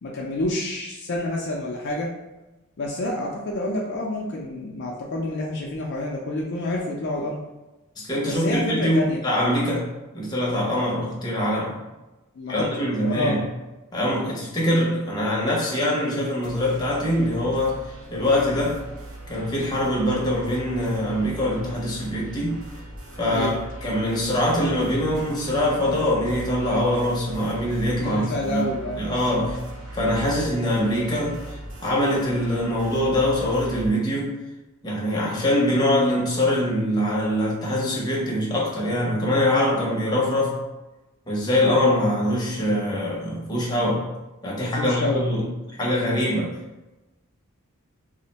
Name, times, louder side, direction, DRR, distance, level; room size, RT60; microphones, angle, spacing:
voice 1, 0.0-2.1 2.8-7.4 8.3-9.2 12.4-12.6 13.0-13.4 23.3-23.5 28.0-29.0 44.6-45.3, left 1 dB, 55° left, -3 dB, 0.4 m, -28 dB
voice 2, 8.0-9.9 10.1-11.8 12.5-13.4 13.9-17.8 18.1-18.8 19.3-22.6 23.2-28.7 29.0-29.6 29.9-34.4 34.8-40.6 41.3-44.1 44.4-45.5 45.8-46.6, left 1 dB, 20° left, -5 dB, 0.7 m, -23 dB
sound 1, 16.4-33.9, right 1 dB, 75° right, 0.6 m, -39 dB
2.4 x 2.1 x 3.9 m, 1.1 s
head